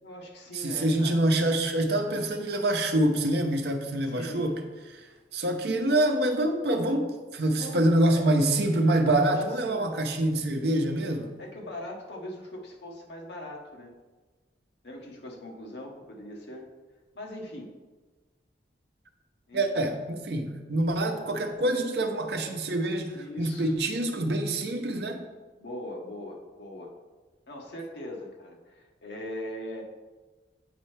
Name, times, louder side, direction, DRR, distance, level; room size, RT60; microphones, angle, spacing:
voice 1, 0.0-1.2 4.0-4.5 7.6-8.4 9.2-9.9 11.4-13.9 14.8-16.7 17.1-17.7 19.5-19.9 21.0-21.2 23.1-23.7 25.6-26.9 27.5-29.8, left 1 dB, 75° left, 0 dB, 1.0 m, -41 dB
voice 2, 0.5-4.6 4.9-5.0 5.3-11.3 19.5-25.2, right 1 dB, 65° right, 4 dB, 0.7 m, -26 dB
8.1 x 4.3 x 3.2 m, 1.3 s
head